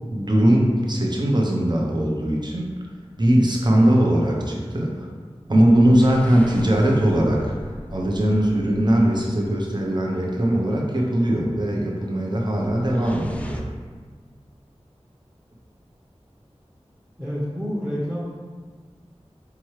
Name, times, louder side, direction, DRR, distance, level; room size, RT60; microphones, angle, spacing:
voice 1, 0.1-2.7 3.2-5.1 5.5-7.5 7.9-13.6, right 1 dB, 40° right, -2 dB, 0.7 m, -20 dB
sound 1, 2.7-3.0 5.5-10.0 12.4-13.6, equal, 10° left, 0.4 m, -40 dB
voice 2, 17.2-18.2, equal, 5° right, -7 dB, 0.8 m, -28 dB
4.7 x 2.9 x 3.1 m, 1.5 s
wide cardioid pair, 45°, 11 cm